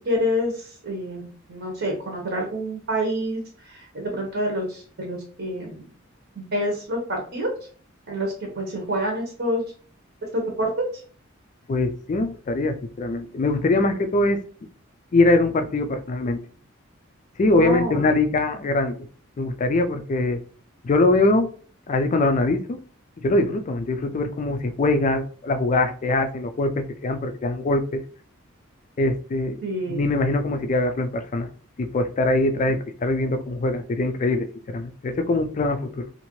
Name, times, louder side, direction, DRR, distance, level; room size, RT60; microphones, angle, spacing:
voice 1, 0.0-5.9 6.4-7.5 8.1-9.6 10.3-10.9 17.5-18.1 29.6-30.1, equal, 60° right, 0 dB, 0.8 m, -27 dB
voice 2, 11.7-14.4 15.1-16.4 17.4-19.0 19.4-20.4 20.8-21.5 21.9-22.8 23.2-28.0 29.0-29.6 29.9-31.5 31.8-36.1, left 2 dB, 35° left, 7 dB, 0.3 m, -22 dB
2.7 x 2.5 x 3.0 m, 0.42 s
head